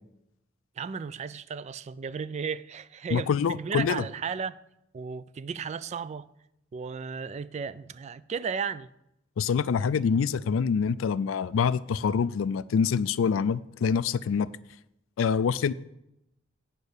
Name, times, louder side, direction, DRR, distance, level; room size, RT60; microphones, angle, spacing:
voice 1, 0.8-4.6 4.9-6.3 6.7-8.9, right 6 dB, 35° right, 0.3 m, -34 dB
voice 2, 3.1-4.0 9.4-14.5 15.2-15.7, left 6 dB, 85° left, 0.4 m, -25 dB
9.0 x 5.3 x 6.6 m
head